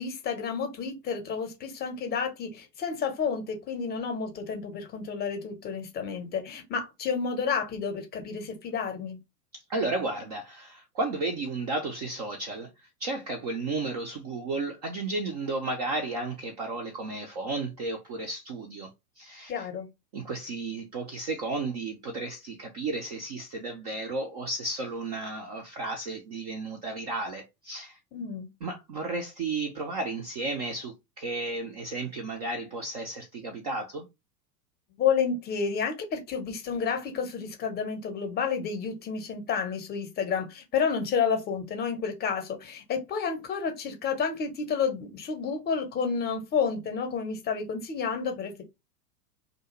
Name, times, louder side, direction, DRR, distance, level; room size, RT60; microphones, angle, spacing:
voice 1, 0.0-9.2 19.5-19.9 28.1-28.5 35.0-48.6, left 6 dB, 20° left, 0.6 m, -30 dB
voice 2, 9.5-18.9 19.2-19.7 20.1-28.0 28.6-34.1, right 3 dB, 30° right, 0.3 m, -33 dB
2.4 x 2.2 x 2.9 m
figure-of-eight pair, 90°, 49 cm